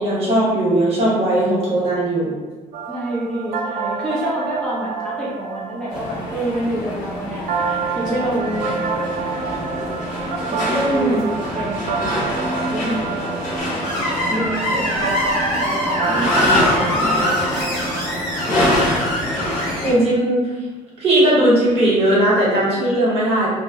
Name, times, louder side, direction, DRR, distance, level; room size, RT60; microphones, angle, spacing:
voice 1, 0.0-2.3 10.9-11.2 14.3-14.5 19.8-20.5 21.0-23.5, right 1 dB, 50° right, -6 dB, 1.1 m, -18 dB
sound 1, 2.7-19.1, right 5 dB, 80° right, 0.4 m, -29 dB
voice 2, 2.9-8.8 10.5-11.2 11.5-14.1 14.4-16.6 16.9-18.1 18.5-18.7, right 1 dB, 5° left, -9 dB, 0.5 m, -27 dB
sound 2, 5.9-19.9, left 1 dB, 85° left, 0.8 m, -25 dB
Screech, 13.8-19.9, left 1 dB, 70° left, 1.3 m, -23 dB
2.7 x 2.1 x 2.7 m, 1.3 s
cardioid pair, 140°, 13 cm